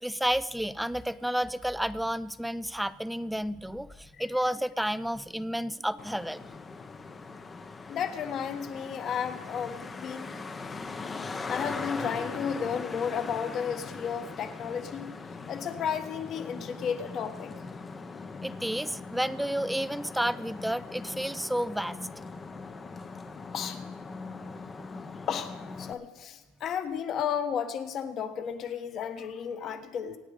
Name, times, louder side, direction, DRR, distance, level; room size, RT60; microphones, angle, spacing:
voice 1, 0.0-6.4 18.4-22.0, equal, ahead, 16 dB, 0.4 m, -31 dB
Traffic noise roadway noise, 6.0-25.9, left 4 dB, 15° left, 0.8 m, -40 dB
voice 2, 7.9-10.3 11.5-15.1 15.5-17.5 23.5-23.8 25.3-30.2, left 7 dB, 35° left, 9 dB, 1.4 m, -33 dB
25.0 x 9.3 x 5.1 m, 1.1 s
cardioid pair, 150°, 0 cm